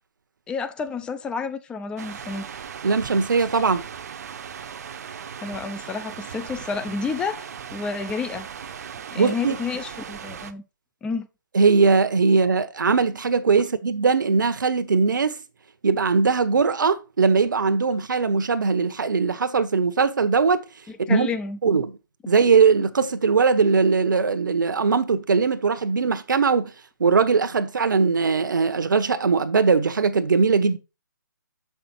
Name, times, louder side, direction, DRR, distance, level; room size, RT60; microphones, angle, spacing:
voice 1, 0.5-2.5 5.4-8.5 9.1-10.6 11.0-11.3 20.9-21.6, left 5 dB, 10° left, 0.6 m, -30 dB
sound 1, 2.0-10.5, right 7 dB, 50° right, 0.9 m, -38 dB
voice 2, 2.8-3.8 9.1-9.6 11.5-15.4 15.8-20.6 21.0-21.3 21.6-21.9 22.3-26.7 27.0-30.8, right 5 dB, 70° right, 1.1 m, -20 dB
7.5 x 5.8 x 4.3 m
hypercardioid pair, 145°, 11 cm